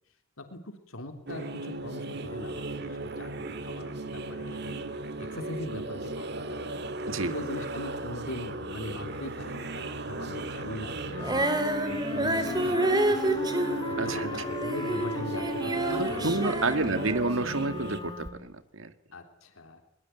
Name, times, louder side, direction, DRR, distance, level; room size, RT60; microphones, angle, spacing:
voice 1, 0.4-3.3 3.6-4.8 5.2-6.8 7.2-11.5 11.9-13.4 13.9-17.1 19.1-19.8, left 1 dB, 90° left, 6 dB, 3.6 m, -41 dB
sound 1, 1.3-18.0, right 2 dB, 55° right, 1.9 m, -36 dB
Wind instrument woodwind instrument, 11.1-18.5, left 2 dB, 20° left, 1.1 m, -37 dB
Female singing, 11.2-17.6 18.2-18.3, right 1 dB, 20° right, 2.7 m, -29 dB
voice 2, 15.9-18.9, right 3 dB, 70° right, 11 dB, 1.8 m, -29 dB
22.0 x 22.0 x 9.4 m, 0.72 s
head